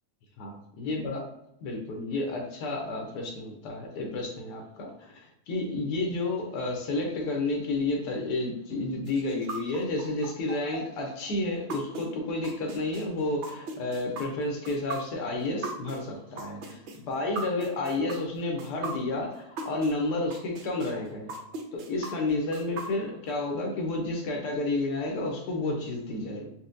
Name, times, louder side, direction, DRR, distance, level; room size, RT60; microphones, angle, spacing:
voice 1, 0.4-1.2 1.6-21.3 21.7-26.5, left 2 dB, 90° left, 1 dB, 1.2 m, -31 dB
sound 1, 9.1-19.9 20.3-23.3, right 3 dB, 85° right, 0.6 m, -38 dB
4.1 x 2.0 x 2.5 m, 0.81 s
omnidirectional pair, 1.7 m